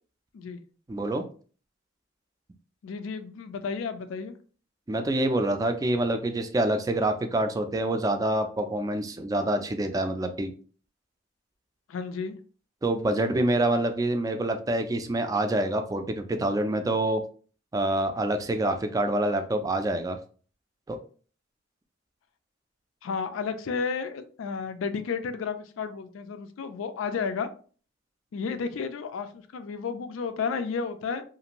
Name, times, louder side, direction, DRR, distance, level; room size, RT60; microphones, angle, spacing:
voice 1, 0.9-1.2 4.9-10.5 12.8-17.2 17.7-20.2 20.9-21.0, right 1 dB, 20° right, 6 dB, 0.3 m, -26 dB
voice 2, 2.8-4.3 11.9-12.4 23.0-27.5 28.3-31.2, left 5 dB, 90° left, 9 dB, 0.4 m, -32 dB
2.5 x 2.5 x 2.9 m, 0.41 s
head